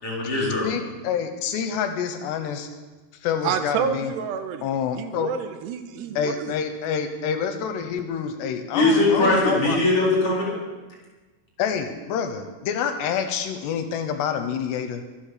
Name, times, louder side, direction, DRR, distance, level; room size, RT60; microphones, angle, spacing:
voice 1, 0.0-0.7 8.7-10.5, left 2 dB, 35° left, -4 dB, 5.2 m, -20 dB
voice 2, 0.6-2.7 3.2-4.1 4.6-5.3 6.2-9.8 11.6-15.0, left 7 dB, 80° left, 7 dB, 3.0 m, -27 dB
voice 3, 3.4-4.7 5.0-6.5, right 7 dB, 80° right, 8 dB, 2.9 m, -28 dB
23.5 x 8.0 x 6.7 m, 1.3 s
omnidirectional pair, 5.0 m